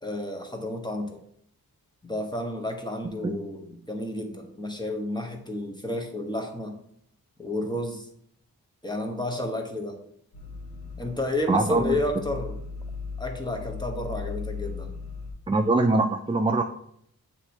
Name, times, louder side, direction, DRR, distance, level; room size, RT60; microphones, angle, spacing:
voice 1, 0.0-1.2 2.0-6.8 7.4-8.1 8.8-10.0 11.0-12.6 13.2-14.9, left 1 dB, 10° left, 2 dB, 1.0 m, -31 dB
sound 1, 10.3-15.3, left 4 dB, 80° left, 1.2 m, -37 dB
voice 2, 11.5-12.0 15.5-16.6, right 2 dB, 15° right, 5 dB, 0.3 m, -23 dB
8.1 x 2.9 x 4.3 m, 0.69 s
wide cardioid pair, 90°, 37 cm